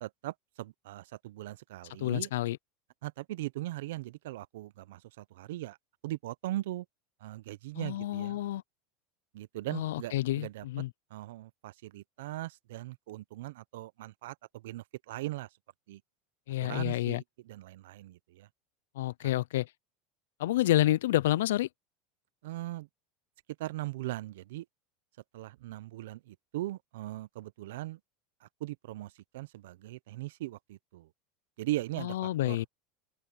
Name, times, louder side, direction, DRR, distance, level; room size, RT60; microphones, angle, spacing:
voice 1, 0.0-2.3 3.0-5.8 6.0-6.9 7.2-8.4 9.3-10.7 11.1-15.5 15.9-16.0 16.6-18.5 19.2-19.3 22.4-22.9 23.6-24.7 25.3-28.0 28.4-31.1 31.6-32.6, right 16 dB, 80° right, 0.6 m, -39 dB
voice 2, 2.0-2.6 7.8-8.6 9.7-10.9 16.5-17.2 19.0-19.7 20.4-21.7 32.0-32.7, left 15 dB, 85° left, 0.4 m, -29 dB
open air
supercardioid pair, 120°, 0 cm